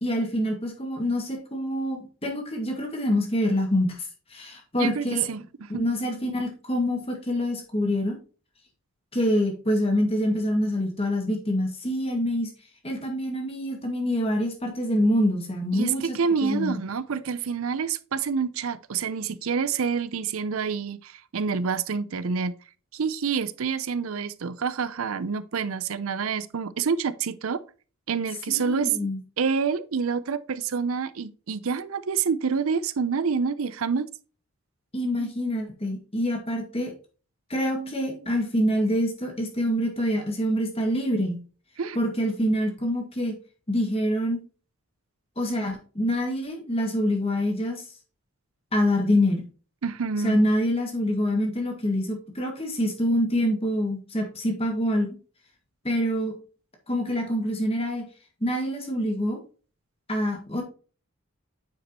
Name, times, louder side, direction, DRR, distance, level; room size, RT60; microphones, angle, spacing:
voice 1, 0.0-5.3 5.7-8.2 9.1-12.5 12.8-16.2 16.4-16.8 28.5-29.2 34.9-36.9 37.5-41.4 42.0-43.3 43.7-44.4 45.4-47.8 48.7-49.4 50.2-55.2 55.8-56.3 56.9-58.0 58.4-59.4 60.1-60.6, equal, 25° left, 2.0 m, -26 dB
voice 2, 4.8-5.4 5.7-5.8 15.7-22.5 22.9-27.6 28.1-29.1 29.4-34.1 35.2-35.3 37.8-38.3 41.8-42.0 49.8-50.4, right 5 dB, 75° right, 0.6 m, -27 dB
9.2 x 5.1 x 3.0 m
head